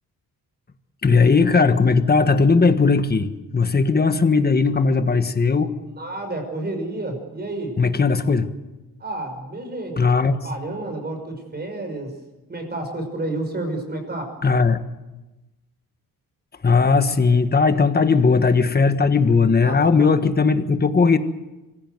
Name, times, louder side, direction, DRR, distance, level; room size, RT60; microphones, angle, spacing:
voice 1, 1.0-5.7 7.8-8.5 10.0-10.4 14.4-14.8 16.6-21.2, left 4 dB, 25° left, 9 dB, 1.4 m, -18 dB
voice 2, 5.9-7.8 9.0-10.1 10.4-12.1 12.5-14.3 19.6-20.1, right 2 dB, 25° right, 5 dB, 5.8 m, -30 dB
25.5 x 16.0 x 8.0 m, 1.1 s
wide cardioid pair, 135°, 36 cm